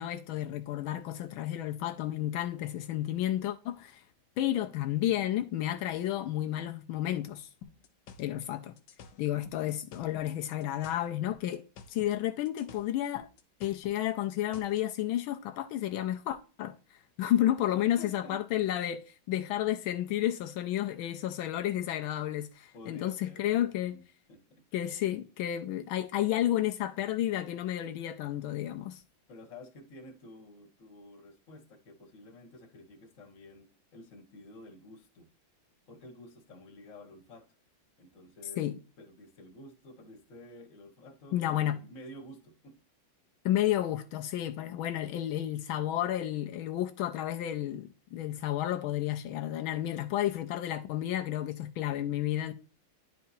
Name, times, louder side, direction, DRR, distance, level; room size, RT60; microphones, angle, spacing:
voice 1, 0.0-4.0 4.4-7.5 8.2-8.8 9.2-11.6 11.9-13.3 13.6-16.7 17.2-19.0 19.3-24.0 24.7-29.0 38.6-38.7 41.3-41.8 43.4-52.5, left 12 dB, 85° left, 1.4 m, -31 dB
sound 1, 7.6-10.4 10.6-12.2 12.5-14.8, left 6 dB, 65° left, 1.3 m, -51 dB
voice 2, 17.7-18.6 22.7-24.0 24.3-24.6 29.3-35.3 35.9-37.5 38.0-38.7 39.0-42.7, left 1 dB, 45° left, 1.5 m, -51 dB
10.5 x 4.6 x 2.7 m
omnidirectional pair, 2.2 m